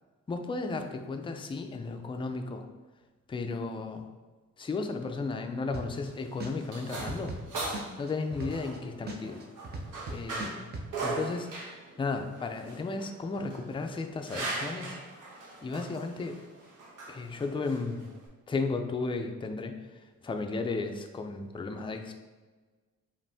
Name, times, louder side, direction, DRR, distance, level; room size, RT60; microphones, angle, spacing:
voice 1, 0.3-2.7 3.3-4.1 4.6-7.4 8.0-9.4 10.1-10.7 11.0-11.5 12.0-15.0 15.6-16.4 17.1-18.1 18.5-22.1, left 3 dB, 15° left, 5 dB, 0.3 m, -34 dB
sound 1, 5.7-6.1 6.4-8.8 9.1-10.9, right 2 dB, 35° right, 0.6 m, -38 dB
sound 2, 6.0-18.3, right 2 dB, 80° right, 1.2 m, -40 dB
5.0 x 2.6 x 3.4 m, 1.3 s
cardioid pair, 115°, 31 cm